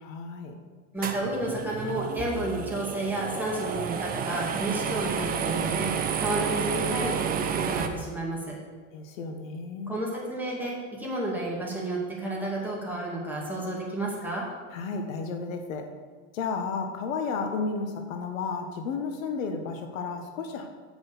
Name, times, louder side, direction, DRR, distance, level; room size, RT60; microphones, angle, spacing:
voice 1, 0.0-0.6 8.9-9.9 14.7-15.9 16.3-20.7, left 4 dB, 70° left, 5 dB, 1.5 m, -32 dB
voice 2, 0.9-8.6 9.9-14.4, right 1 dB, 5° right, -4 dB, 2.5 m, -31 dB
sound 1, 1.0-7.9, right 7 dB, 20° right, 0.7 m, -30 dB
7.9 x 6.2 x 7.2 m, 1.5 s
hypercardioid pair, 125°, 41 cm